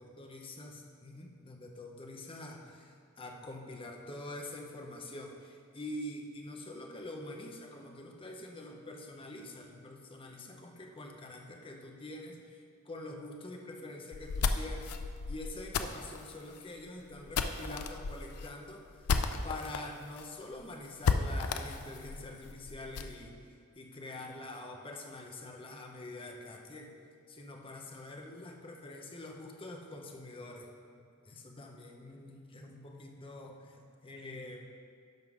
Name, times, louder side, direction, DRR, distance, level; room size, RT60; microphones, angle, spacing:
voice 1, 0.0-14.9 15.3-19.1 19.4-23.4 23.7-27.0 27.3-30.7 30.9-34.6, left 2 dB, 25° left, 1 dB, 0.8 m, -45 dB
sound 1, 14.1-19.8 20.2-20.3 20.5-20.6 21.0-23.2, left 5 dB, 85° left, 0.5 m, -33 dB
10.5 x 3.7 x 6.1 m, 2.2 s
head